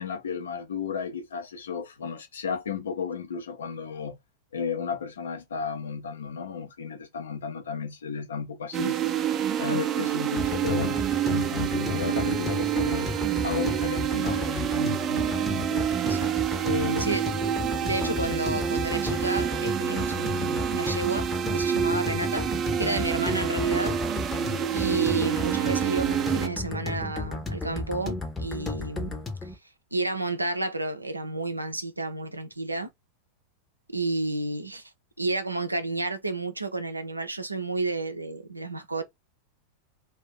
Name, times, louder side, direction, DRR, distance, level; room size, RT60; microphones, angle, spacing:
voice 1, 0.0-4.2 4.5-13.1 13.4-15.9 16.6-17.2 24.4-24.6, left 6 dB, 65° left, 0.7 m, -33 dB
sound 1, 8.7-26.5, right 9 dB, 30° right, 0.4 m, -28 dB
sound 2, 10.4-29.6, left 3 dB, 15° left, 0.8 m, -34 dB
voice 2, 17.8-22.5 22.8-24.0 24.7-29.5 29.9-32.9 33.9-34.9 35.2-39.0, right 2 dB, 85° right, 0.6 m, -31 dB
2.6 x 2.3 x 3.7 m
figure-of-eight pair, 90°, 0 cm